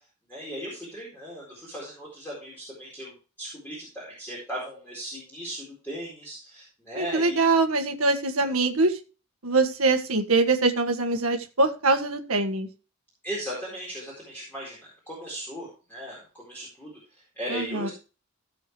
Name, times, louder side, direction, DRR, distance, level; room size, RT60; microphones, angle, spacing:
voice 1, 0.3-7.6 13.2-17.9, equal, 10° left, -5 dB, 4.3 m, -37 dB
voice 2, 6.9-9.0 9.4-12.7 17.5-17.9, right 3 dB, 80° right, 5 dB, 1.7 m, -23 dB
16.5 x 7.1 x 3.2 m, 0.34 s
head